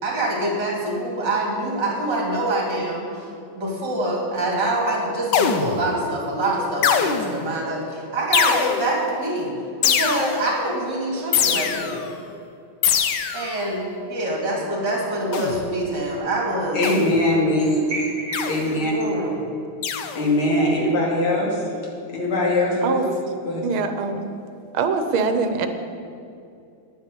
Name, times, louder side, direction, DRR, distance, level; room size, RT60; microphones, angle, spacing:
voice 1, 0.0-9.5 9.8-12.1 13.3-16.8 17.9-18.4 18.9-19.4, right 1 dB, 55° right, -1 dB, 3.2 m, -25 dB
sound 1, 5.3-5.9 6.8-7.5 8.3-9.0 9.8-10.6 11.3-12.1 12.8-13.6 15.3-15.7 16.8-17.3 18.3-18.8 19.8-20.3, left 7 dB, 65° left, 1.3 m, -23 dB
voice 2, 16.7-17.8 18.5-18.9 20.1-21.6 22.1-23.1 23.5-23.6, left 1 dB, 85° left, -2 dB, 3.4 m, -21 dB
voice 3, 23.6-24.2 24.7-25.7, right 5 dB, 85° right, 8 dB, 1.8 m, -23 dB
10.0 x 9.3 x 8.4 m, 2.5 s
omnidirectional pair, 2.2 m